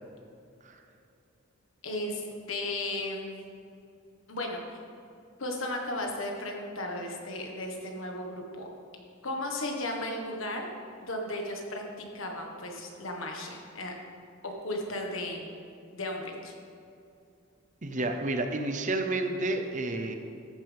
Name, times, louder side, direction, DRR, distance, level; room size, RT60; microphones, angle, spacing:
voice 1, 1.8-3.4 4.3-4.8 5.4-8.4 9.2-10.7 11.0-11.8 12.1-13.9 14.4-15.5 15.9-16.6, left 1 dB, 75° left, 1 dB, 1.6 m, -35 dB
voice 2, 17.8-20.2, right 2 dB, 35° right, 6 dB, 0.8 m, -30 dB
14.5 x 8.9 x 3.6 m, 2.6 s
head